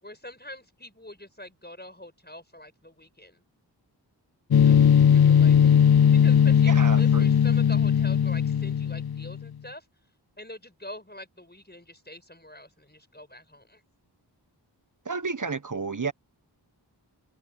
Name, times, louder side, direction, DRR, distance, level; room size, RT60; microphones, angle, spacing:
voice 1, 0.0-3.4 4.6-5.7 6.1-9.9 10.4-13.8, left 1 dB, 25° left, 6.2 m, -45 dB
sound 1, 4.5-9.4, left 8 dB, 60° left, 0.5 m, -19 dB
voice 2, 6.6-7.3 15.0-16.1, right 4 dB, 45° right, 1.2 m, -31 dB
wide cardioid pair, 50°, 43 cm